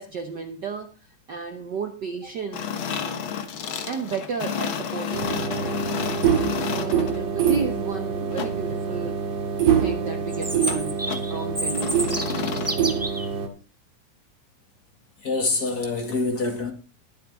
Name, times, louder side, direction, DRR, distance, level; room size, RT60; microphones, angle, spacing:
voice 1, 0.0-2.6 3.9-5.8 6.7-9.2 9.8-12.1, right 5 dB, 85° right, 0.9 m, -33 dB
sound 1, 2.5-7.2 8.3-8.5 10.7-10.8 11.1-11.3 11.7-12.8, left 7 dB, 55° left, 1.6 m, -31 dB
sound 2, 5.1-13.5, right 7 dB, 55° right, 2.6 m, -25 dB
Chirp tweet, 10.3-13.3, right 1 dB, 20° right, 0.3 m, -30 dB
voice 2, 15.2-16.7, left 3 dB, 35° left, 2.2 m, -25 dB
21.0 x 8.4 x 3.5 m
omnidirectional pair, 3.4 m